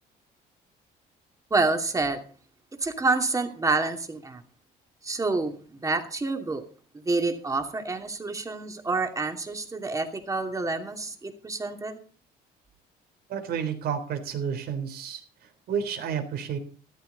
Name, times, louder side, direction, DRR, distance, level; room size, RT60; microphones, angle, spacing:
voice 1, 1.5-2.2 2.8-4.4 5.0-6.6 7.0-12.0, right 3 dB, 20° right, 5 dB, 2.7 m, -28 dB
voice 2, 13.3-15.2 15.7-16.6, right 7 dB, 70° right, 7 dB, 3.6 m, -30 dB
14.0 x 13.0 x 4.0 m, 0.41 s
cardioid pair, 110°, 17 cm